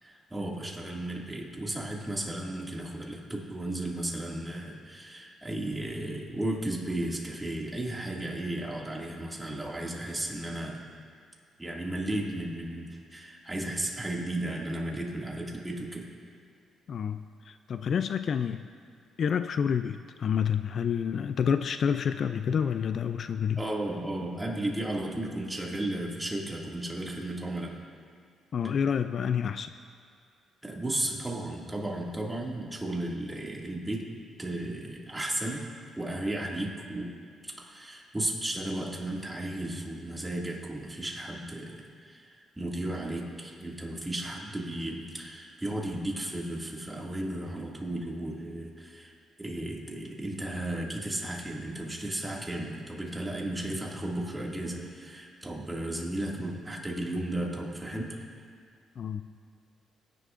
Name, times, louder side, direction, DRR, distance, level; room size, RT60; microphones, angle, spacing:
voice 1, 0.0-10.9 11.6-16.1 23.6-27.8 30.6-34.1 34.4-35.6 36.0-37.2 37.4-58.3, right 1 dB, 15° right, -2 dB, 2.1 m, -34 dB
voice 2, 16.9-18.7 19.2-23.6 28.5-29.7 59.0-59.3, left 7 dB, 55° left, 10 dB, 0.3 m, -28 dB
19.5 x 10.5 x 2.5 m, 2.2 s
cardioid pair, 90°, 0 cm